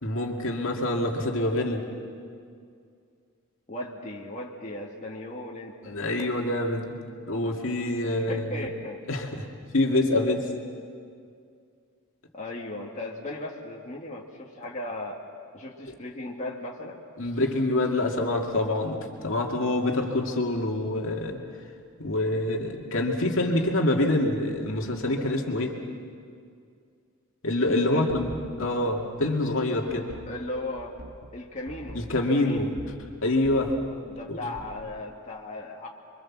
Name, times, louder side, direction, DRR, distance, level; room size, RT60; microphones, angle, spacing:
voice 1, 0.0-1.8 5.8-6.9 7.3-8.7 9.1-9.5 9.7-10.5 17.2-21.4 22.0-25.8 27.4-30.1 31.9-32.7 33.2-33.7 34.3-34.5, left 2 dB, 60° left, 1 dB, 2.4 m, -26 dB
voice 2, 3.7-6.0 8.0-9.0 12.3-15.2 15.5-17.0 27.9-28.2 30.3-31.0 31.3-32.7 34.0-35.9, left 1 dB, 30° left, -2 dB, 2.0 m, -37 dB
sound 1, 28.1-29.6 29.9-33.2 33.4-34.0 34.3-34.9, right 1 dB, 55° right, 1.6 m, -44 dB
28.0 x 24.0 x 7.4 m, 2.3 s
head